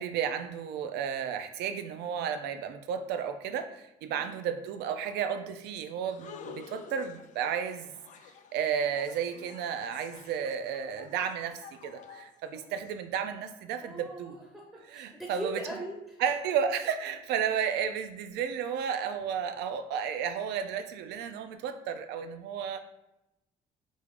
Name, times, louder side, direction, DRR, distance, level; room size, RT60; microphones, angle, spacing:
voice 1, 0.0-7.9 8.5-14.3 14.9-15.5 16.2-22.8, right 7 dB, 80° right, 9 dB, 0.4 m, -33 dB
sound 1, 6.0-12.9, left 6 dB, 45° left, 0.4 m, -50 dB
voice 2, 13.8-16.2, right 1 dB, 5° right, -1 dB, 0.5 m, -40 dB
3.4 x 2.4 x 3.5 m, 0.90 s
cardioid pair, 110°, 17 cm